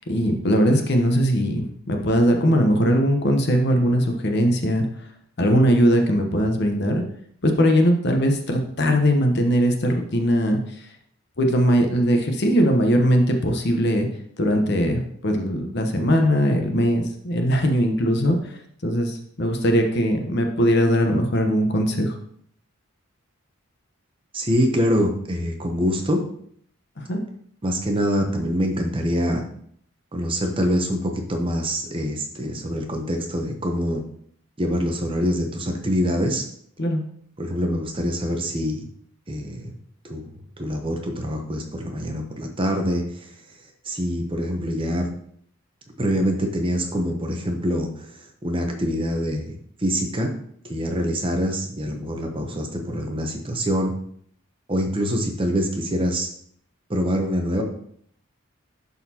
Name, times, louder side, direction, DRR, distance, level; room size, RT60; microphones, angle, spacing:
voice 1, 0.1-4.8 5.4-7.0 7.4-10.6 11.4-14.1 14.4-18.4 18.8-22.1 27.1-27.2 36.8-37.0, equal, 50° left, 4 dB, 0.9 m, -20 dB
voice 2, 24.3-26.2 27.6-29.4 30.1-34.0 34.6-36.5 37.4-38.8 39.3-39.7 40.0-43.3 43.8-45.1 46.0-50.3 50.7-53.9 54.7-56.3 56.9-57.6, equal, 25° right, 3 dB, 0.7 m, -25 dB
11.0 x 4.1 x 2.8 m, 0.64 s
head